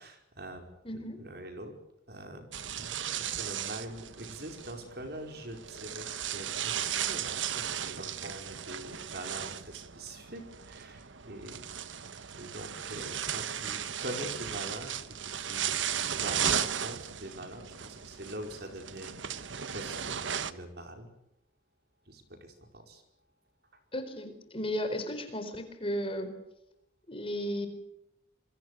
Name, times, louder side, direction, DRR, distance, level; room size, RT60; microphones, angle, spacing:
voice 1, 0.0-1.7 2.1-2.5 2.7-12.1 12.4-19.2 19.7-21.1 22.1-23.0, right 1 dB, 55° right, 5 dB, 5.0 m, -44 dB
voice 2, 0.8-1.2 23.9-26.3 27.1-27.7, equal, 30° left, 8 dB, 4.3 m, -34 dB
sound 1, 2.5-20.5, right 9 dB, 80° right, 1.3 m, -36 dB
27.5 x 23.0 x 6.8 m, 0.82 s
head